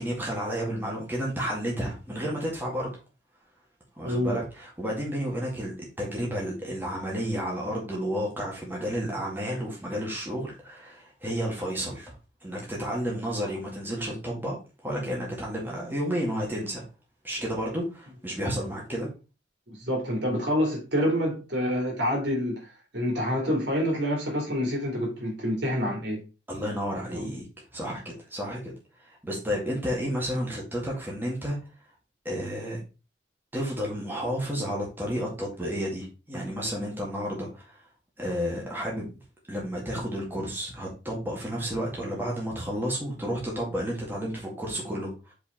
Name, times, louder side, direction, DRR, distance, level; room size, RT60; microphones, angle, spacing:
voice 1, 0.0-2.9 4.0-12.1 12.4-14.6 14.8-16.8 17.2-19.1 26.5-27.5 27.7-28.7 29.0-31.6 32.2-32.8 33.5-37.8 38.2-39.1 39.5-45.3, equal, 10° right, 2.2 m, -31 dB
voice 2, 19.8-26.2 27.1-27.3, equal, 70° right, 2.9 m, -27 dB
5.2 x 5.0 x 4.5 m
head